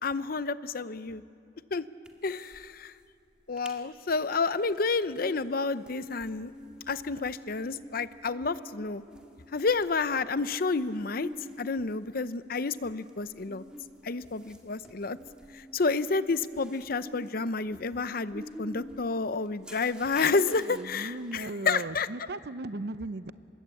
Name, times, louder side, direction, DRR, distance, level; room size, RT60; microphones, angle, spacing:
voice 1, 0.0-1.2 1.7-1.9 2.2-2.9 3.5-6.5 6.9-9.0 9.5-11.3 11.6-13.6 14.0-15.2 15.5-22.1, left 4 dB, 55° left, 14 dB, 0.7 m, -30 dB
sound 1, 2.0-2.7 2.9-3.0 3.4-3.8 4.2-21.3, equal, 5° right, 2.0 m, -48 dB
voice 2, 20.6-23.3, right 2 dB, 60° right, 14 dB, 0.7 m, -37 dB
26.5 x 22.0 x 8.4 m, 2.7 s
head